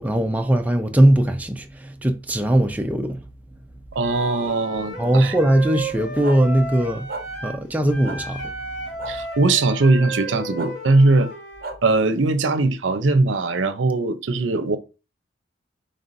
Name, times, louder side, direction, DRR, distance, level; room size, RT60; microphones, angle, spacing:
voice 1, 0.0-3.2 5.0-7.1 7.4-8.5, right 1 dB, 10° right, 0.5 m, -20 dB
voice 2, 3.9-5.3 9.1-11.3 11.8-14.8, right 2 dB, 90° right, 0.6 m, -20 dB
Wind instrument woodwind instrument, 4.0-7.6 7.9-11.8, right 2 dB, 75° left, 1.6 m, -34 dB
sound 1, 6.2-6.4 7.1-7.2 8.0-8.2 9.0-9.1 10.6-10.7 11.6-11.8, right 3 dB, 50° right, 0.7 m, -32 dB
5.4 x 3.4 x 2.6 m
head